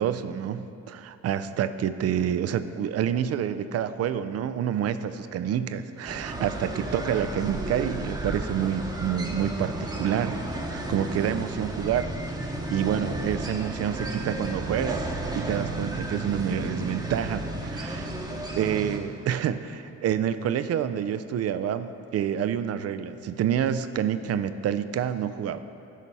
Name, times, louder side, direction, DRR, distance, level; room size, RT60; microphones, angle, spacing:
voice 1, 0.0-15.0 15.3-18.1 18.5-25.6, right 9 dB, 55° right, 12 dB, 0.4 m, -28 dB
sound 1, 6.0-19.0, right 2 dB, 15° right, 0.9 m, -33 dB
11.0 x 4.0 x 5.5 m, 2.8 s
cardioid pair, 90°, 30 cm